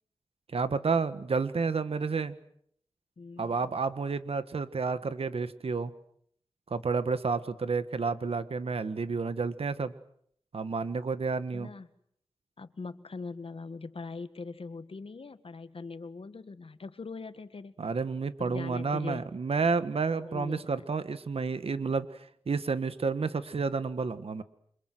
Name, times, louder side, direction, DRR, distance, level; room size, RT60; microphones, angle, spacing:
voice 1, 0.5-2.4 3.4-5.9 6.7-9.9 10.5-11.7 17.8-22.1 22.5-24.4, right 4 dB, 80° right, 12 dB, 1.6 m, -30 dB
voice 2, 3.2-3.6 11.5-11.9 12.6-17.8 18.4-19.2 20.1-20.8, left 4 dB, 70° left, 11 dB, 1.8 m, -41 dB
28.5 x 26.0 x 7.9 m, 0.68 s
wide cardioid pair, 55°, 10 cm